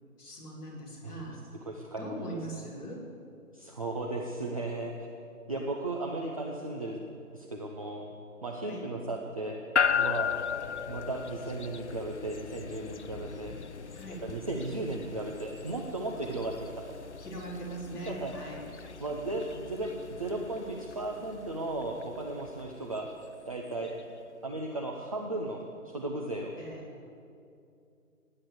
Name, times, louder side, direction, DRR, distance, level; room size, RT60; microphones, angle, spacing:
voice 1, 0.2-1.4 2.0-3.1 8.6-8.8 13.9-14.2 17.2-18.6 26.6-26.9, right 1 dB, 10° left, -8 dB, 2.9 m, -41 dB
voice 2, 1.7-2.6 3.5-5.1 5.5-7.0 7.3-8.1 8.4-9.6 9.9-10.3 10.9-13.5 14.2-17.0 18.1-18.3 19.0-23.1 23.5-23.9 24.4-25.6 25.8-26.5, right 2 dB, 25° right, 0 dB, 0.8 m, -35 dB
sound 1, 9.8-24.0, left 7 dB, 50° left, 0.6 m, -37 dB
17.5 x 9.9 x 7.8 m, 2.6 s
figure-of-eight pair, 155°, 44 cm